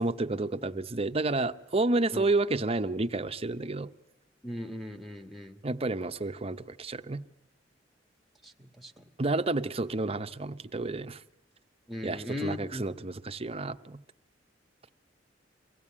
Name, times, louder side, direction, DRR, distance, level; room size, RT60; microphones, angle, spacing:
voice 1, 0.0-3.9 5.6-7.2 9.2-11.2 12.0-14.0, right 2 dB, 35° right, 0.8 m, -30 dB
voice 2, 4.4-5.6 8.4-9.1 11.9-12.8, left 1 dB, ahead, 1.6 m, -38 dB
24.0 x 16.5 x 8.7 m
head